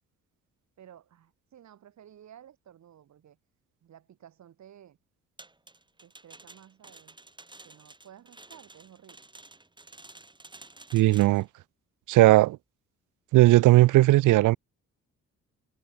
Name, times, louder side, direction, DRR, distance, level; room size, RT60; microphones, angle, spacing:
voice 1, 0.8-3.4 3.8-5.0 6.0-7.2 7.6-9.2, right 10 dB, 65° right, 7.5 m, -53 dB
sound 1, 5.4-11.4, right 2 dB, 15° right, 3.0 m, -51 dB
voice 2, 10.9-11.5 12.1-12.6 13.3-14.6, right 17 dB, 85° right, 0.8 m, -18 dB
cardioid pair, 90°, 30 cm